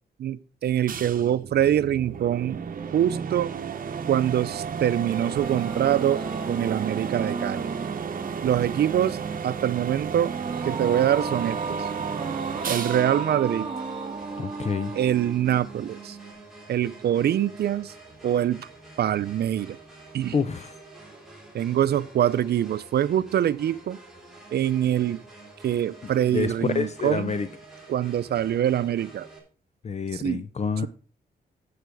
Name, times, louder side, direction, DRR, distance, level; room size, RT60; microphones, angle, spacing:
voice 1, 0.2-2.6 2.9-3.5 4.1-7.7 8.4-10.3 10.7-11.8 12.7-13.7 15.0-16.2 16.7-17.9 18.2-18.6 19.0-19.8 20.1-20.3 21.5-24.0 24.5-25.2 25.6-27.4 27.9-29.3 30.1-30.4, right 11 dB, 80° right, 0.5 m, -24 dB
sound 1, 0.9-14.4, right 6 dB, 55° right, 0.9 m, -34 dB
sound 2, 4.9-16.3, right 4 dB, 35° right, 2.3 m, -34 dB
sound 3, 12.5-29.4, right 2 dB, ahead, 3.4 m, -48 dB
voice 2, 14.4-15.0 20.3-20.8 26.3-27.5 29.8-30.9, left 5 dB, 40° left, 0.6 m, -28 dB
9.1 x 6.6 x 4.7 m
cardioid pair, 100°, 17 cm